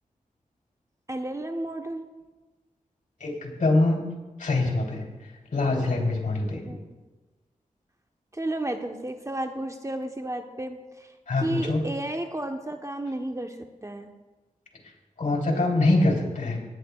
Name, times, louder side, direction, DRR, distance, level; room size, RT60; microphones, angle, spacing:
voice 1, 1.1-2.0 6.6-7.0 8.3-11.1 11.4-13.6 13.8-14.1, right 1 dB, 20° right, 5 dB, 1.0 m, -32 dB
voice 2, 3.2-4.0 4.4-5.1 5.5-6.7 11.3-11.8 15.2-16.6, left 2 dB, 65° left, 1 dB, 3.2 m, -24 dB
19.5 x 10.0 x 2.4 m, 1.2 s
cardioid pair, 45°, 14 cm